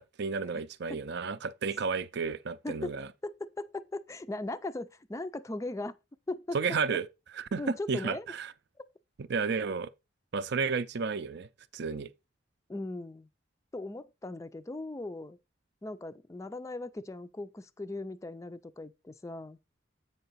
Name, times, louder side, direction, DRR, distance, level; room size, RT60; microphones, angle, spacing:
voice 1, 0.0-3.1 6.5-7.1 7.3-8.5 9.2-9.9 10.3-12.1, right 5 dB, 60° right, 0.5 m, -32 dB
voice 2, 2.6-3.0 3.2-6.0 6.3-6.6 6.9-7.0 7.6-8.3 12.7-13.3 13.7-15.4 15.8-19.6, left 2 dB, 15° left, 0.4 m, -38 dB
7.9 x 5.6 x 4.0 m
head